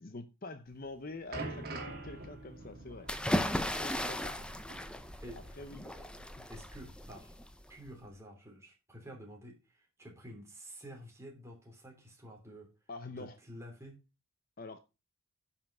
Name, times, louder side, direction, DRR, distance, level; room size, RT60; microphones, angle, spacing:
voice 1, 0.0-3.1 3.8-4.4 5.6-5.9 12.9-13.4 14.6-14.8, left 3 dB, 40° left, 0.7 m, -45 dB
sound 1, 0.7-5.6 5.9-6.0 6.8-6.9, right 2 dB, 45° right, 2.5 m, -45 dB
sound 2, 3.1-7.9, equal, 5° left, 0.6 m, -36 dB
voice 2, 4.9-5.6 5.9-6.2 6.5-7.4 7.7-12.7 13.2-13.9, equal, 10° right, 3.0 m, -50 dB
10.5 x 5.7 x 5.3 m
head